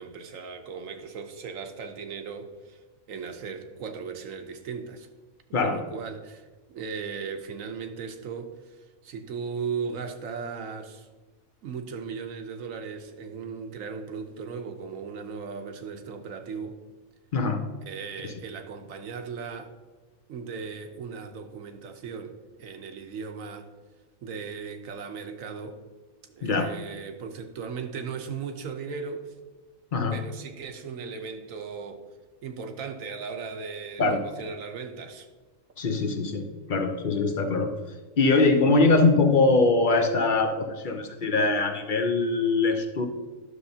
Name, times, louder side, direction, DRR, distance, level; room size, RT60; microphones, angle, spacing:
voice 1, 0.0-2.8 3.1-5.1 5.6-11.1 11.6-16.8 17.9-19.7 20.3-23.7 24.2-25.8 26.3-29.3 30.1-32.0 32.4-35.3, right 5 dB, 75° right, 6 dB, 1.2 m, -37 dB
voice 2, 17.3-17.6 18.2-18.3 26.4-26.7 29.9-30.2 34.0-34.2 35.8-37.7 38.2-43.1, left 3 dB, 45° left, 6 dB, 0.7 m, -22 dB
11.0 x 6.5 x 2.8 m, 1.3 s
omnidirectional pair, 1.4 m